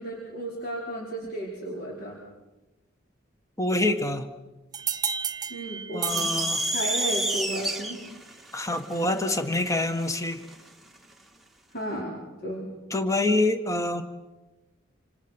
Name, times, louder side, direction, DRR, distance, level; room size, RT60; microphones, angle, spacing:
voice 1, 0.0-2.2 5.5-8.0 11.7-12.2 12.4-12.7, right 1 dB, 50° left, -3 dB, 4.8 m, -34 dB
voice 2, 3.6-4.3 5.9-6.6 8.5-10.4 12.9-14.0, left 2 dB, 15° left, 8 dB, 1.5 m, -26 dB
sound 1, 4.7-7.3, right 6 dB, 20° right, 0.9 m, -33 dB
sound 2, 6.1-10.6, right 1 dB, ahead, 2.0 m, -29 dB
27.5 x 27.0 x 6.1 m, 1.1 s
head